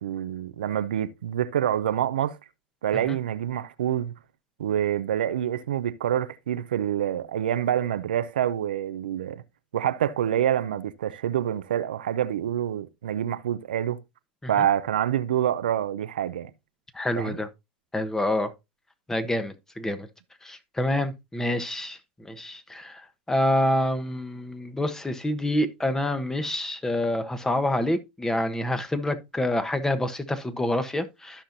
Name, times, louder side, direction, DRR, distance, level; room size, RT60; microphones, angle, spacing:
voice 1, 0.0-2.4 2.8-4.1 4.6-9.4 9.7-14.0 14.5-16.5 17.1-17.4 21.5-21.6, right 10 dB, 85° right, 0.6 m, -26 dB
voice 2, 16.9-17.5 17.9-18.5 19.1-20.1 20.4-23.0 23.3-31.4, left 1 dB, 10° left, 1.2 m, -27 dB
13.5 x 5.7 x 2.7 m
hypercardioid pair, 95°, 5 cm